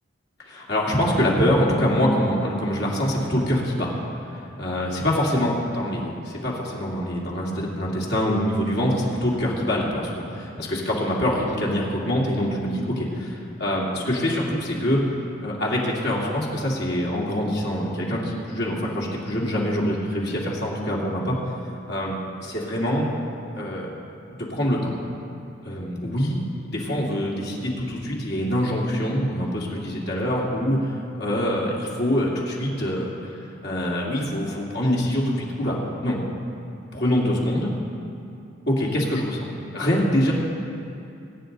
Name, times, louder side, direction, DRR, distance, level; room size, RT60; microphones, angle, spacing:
voice 1, 0.5-3.9 4.3-13.1 13.6-15.0 15.4-21.4 21.9-23.1 23.6-23.9 24.4-24.9 25.6-26.4 26.6-33.1 33.6-36.2 36.9-37.7 38.7-40.3, equal, 55° left, -4 dB, 2.4 m, -24 dB
21.5 x 9.4 x 4.0 m, 2.6 s
head